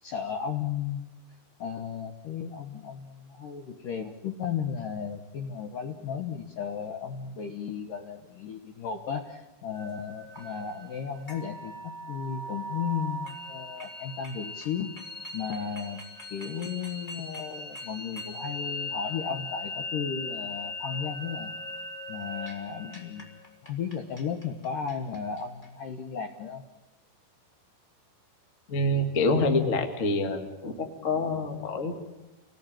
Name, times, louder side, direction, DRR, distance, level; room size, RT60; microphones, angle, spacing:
voice 1, 0.0-1.1 1.6-14.9 15.3-16.0 16.3-21.5 22.1-26.6, left 7 dB, 70° left, 5 dB, 2.0 m, -35 dB
sound 1, 9.7-25.6, left 2 dB, 10° left, 3.2 m, -39 dB
voice 2, 28.7-31.9, left 2 dB, 50° left, 5 dB, 0.9 m, -26 dB
28.0 x 19.0 x 9.0 m, 1.0 s
omnidirectional pair, 5.5 m